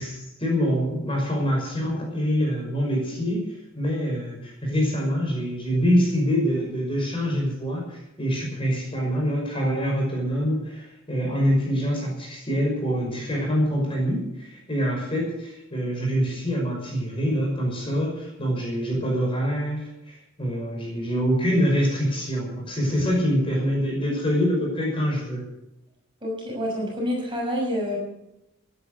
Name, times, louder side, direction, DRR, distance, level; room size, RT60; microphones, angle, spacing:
voice 1, 0.0-3.4 3.7-25.4, equal, 25° left, -1 dB, 5.6 m, -25 dB
voice 2, 26.2-28.0, equal, 25° right, -2 dB, 6.3 m, -27 dB
16.5 x 10.0 x 6.7 m, 0.88 s
head